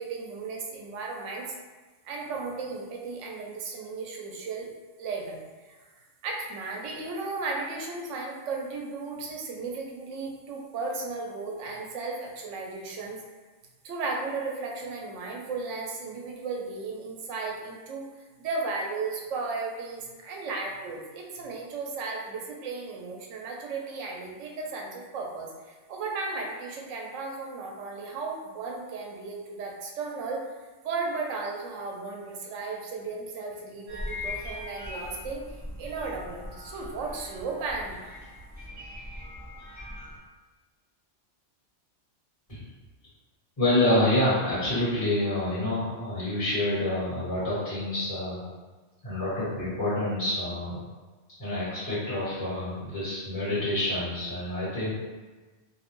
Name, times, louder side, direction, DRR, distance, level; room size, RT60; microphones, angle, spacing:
voice 1, 0.0-1.6 2.0-4.7 5.0-5.4 5.6-5.8 6.2-13.2 13.8-18.1 18.4-38.0, right 3 dB, 80° right, 0 dB, 0.9 m, -35 dB
sound 1, 33.9-40.2, left 2 dB, 10° right, 0.4 m, -40 dB
voice 2, 43.6-48.4 49.0-50.8 51.4-54.9, left 1 dB, 30° left, -11 dB, 1.1 m, -27 dB
2.5 x 2.1 x 2.9 m, 1.3 s
omnidirectional pair, 1.3 m